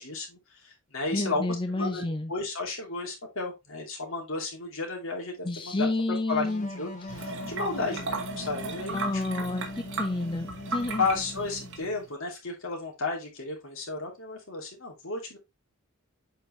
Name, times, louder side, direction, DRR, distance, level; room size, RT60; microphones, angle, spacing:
voice 1, 0.0-2.0 2.3-5.9 6.3-6.5 6.8-9.1 9.4-9.5 11.0-15.4, left 3 dB, 65° left, 2.8 m, -33 dB
voice 2, 1.1-2.3 5.4-6.7 8.9-11.1, left 2 dB, 25° left, 0.6 m, -30 dB
sound 1, 6.4-12.1, left 2 dB, 40° left, 1.6 m, -41 dB
sound 2, 7.1-12.1, right 3 dB, 60° right, 1.9 m, -37 dB
7.9 x 4.6 x 3.1 m
head